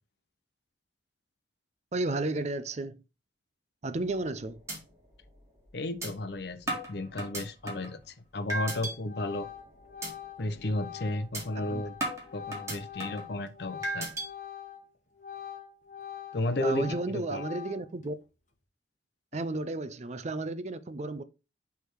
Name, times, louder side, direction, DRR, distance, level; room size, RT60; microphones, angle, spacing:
voice 1, 1.9-3.0 3.8-4.6 11.7-11.8 16.6-18.2 19.3-21.2, right 2 dB, 35° right, 0.5 m, -33 dB
sound 1, 4.0-4.3 4.7-4.8 5.2-5.3 6.0-6.1 6.7-7.9 8.5-8.9 9.4-9.6 10.0-10.1 10.5-10.7 11.3-11.4 12.0-13.3 13.8-14.3, right 2 dB, 15° right, 1.9 m, -35 dB
voice 2, 5.7-9.5 10.4-12.0 12.3-14.1 16.3-16.9 17.3-17.4, left 1 dB, 60° left, 0.7 m, -33 dB
Organ, 8.0-8.2 8.5-14.9 15.1-18.0, left 10 dB, 40° left, 1.3 m, -44 dB
6.5 x 3.5 x 4.5 m
head